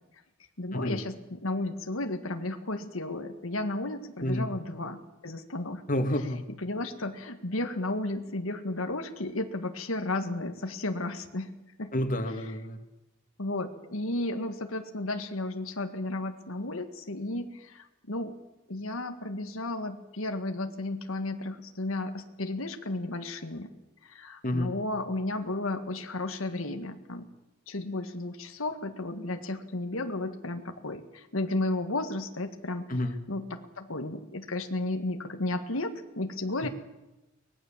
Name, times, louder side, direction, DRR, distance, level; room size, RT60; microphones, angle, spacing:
voice 1, 0.6-5.8 6.6-11.5 11.8-11.9 12.4-12.6 13.4-18.4 18.7-23.7 24.0-27.3 27.7-32.9 33.3-36.7, left 2 dB, 85° left, 6 dB, 1.8 m, -33 dB
voice 2, 5.9-6.4 11.9-12.8 24.4-24.7 32.9-33.2, left 1 dB, 40° left, 6 dB, 2.2 m, -29 dB
24.0 x 19.5 x 7.4 m, 1.0 s
head